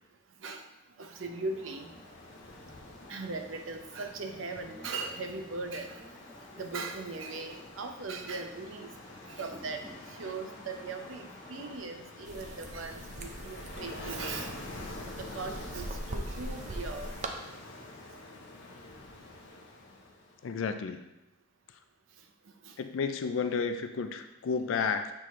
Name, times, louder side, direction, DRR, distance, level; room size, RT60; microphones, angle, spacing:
voice 1, 1.0-1.9 3.1-6.1 6.6-8.9 9.3-9.8 10.1-14.6 15.2-17.1 22.6-22.8, right 3 dB, 85° right, 5 dB, 0.7 m, -39 dB
sound 1, 1.1-11.8, left 1 dB, 15° left, 1.4 m, -53 dB
Ocean, 1.3-20.4, left 2 dB, 70° left, 0.8 m, -47 dB
sound 2, 12.3-17.3, right 1 dB, 40° right, 0.6 m, -41 dB
voice 2, 20.4-21.0 22.8-25.1, left 5 dB, 85° left, 8 dB, 0.4 m, -31 dB
7.6 x 4.2 x 3.2 m, 0.92 s
head